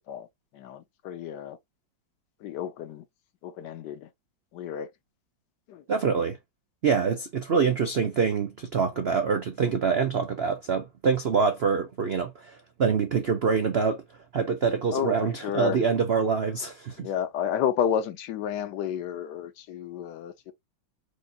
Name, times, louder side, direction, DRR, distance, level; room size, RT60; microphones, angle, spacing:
voice 1, 0.5-1.6 2.4-3.0 3.4-4.1 4.5-4.9 5.7-5.8 14.9-15.1 15.4-15.8 17.0-20.5, left 9 dB, 70° left, 1.1 m, -31 dB
voice 2, 5.9-6.4 6.8-14.0 14.3-17.1, right 5 dB, 80° right, 0.5 m, -25 dB
5.1 x 2.5 x 3.8 m
omnidirectional pair, 2.1 m